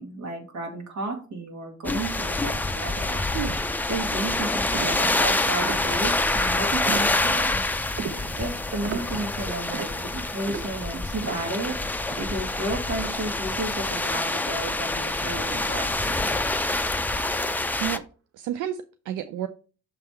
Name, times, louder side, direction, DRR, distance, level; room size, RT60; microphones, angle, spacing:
voice 1, 0.0-3.2 3.9-7.6 8.3-11.8 12.2-16.3, right 2 dB, 65° right, 1 dB, 2.1 m, -33 dB
sound 1, 1.8-18.0, left 2 dB, 5° left, 0.4 m, -26 dB
sound 2, 4.7-6.3 6.8-7.6 8.0-13.6 13.8-15.9 16.2-16.6 17.1-17.6, right 6 dB, 45° right, 0.8 m, -39 dB
voice 2, 18.4-19.5, right 10 dB, 85° right, 10 dB, 0.5 m, -30 dB
6.7 x 3.5 x 4.4 m, 0.38 s
cardioid pair, 90°, 30 cm